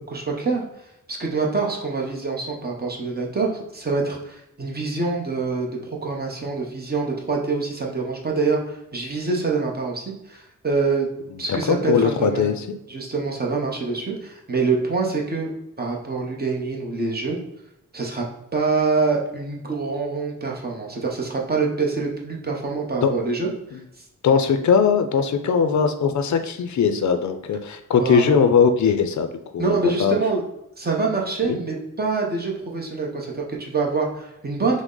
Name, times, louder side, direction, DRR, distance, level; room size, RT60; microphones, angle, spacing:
voice 1, 0.1-0.6 1.1-11.1 11.4-12.6 12.9-17.4 17.9-18.2 18.5-24.0 28.0-28.3 29.6-30.4 30.8-34.8, right 4 dB, 30° right, -1 dB, 0.8 m, -25 dB
voice 2, 11.5-12.5 23.0-23.1 24.2-29.3 29.5-30.1 31.5-31.6, left 6 dB, 55° left, 7 dB, 0.5 m, -20 dB
6.0 x 2.1 x 3.8 m, 0.87 s
wide cardioid pair, 170°, 34 cm